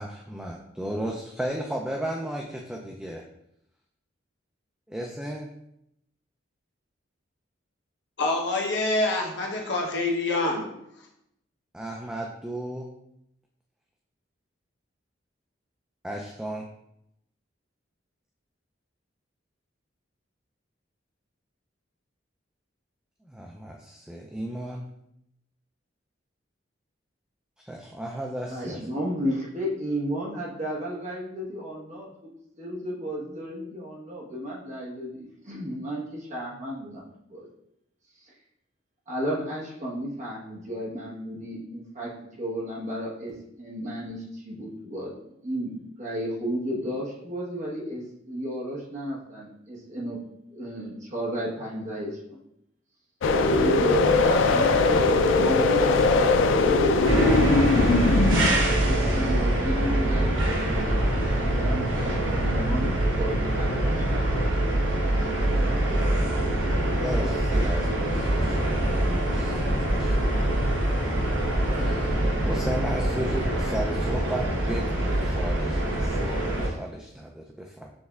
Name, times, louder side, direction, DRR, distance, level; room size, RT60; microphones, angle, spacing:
voice 1, 0.0-3.2 4.9-5.5 11.7-12.9 16.0-16.7 23.2-24.8 27.6-28.8 66.8-71.1 71.7-77.9, right 1 dB, 5° right, 0 dB, 0.3 m, -35 dB
voice 2, 8.2-10.7, left 2 dB, 65° left, -1 dB, 0.9 m, -26 dB
voice 3, 28.5-32.1 32.6-37.5 39.1-42.1 42.4-50.2 50.5-52.4 53.5-55.0 55.3-58.0 58.3-64.2 65.0-66.0, equal, 40° right, -4 dB, 1.1 m, -34 dB
sound 1, 53.2-58.5, left 3 dB, 85° left, 0.4 m, -20 dB
sound 2, 57.0-76.7, right 1 dB, 85° right, 1.0 m, -24 dB
6.3 x 3.3 x 2.3 m, 0.79 s
head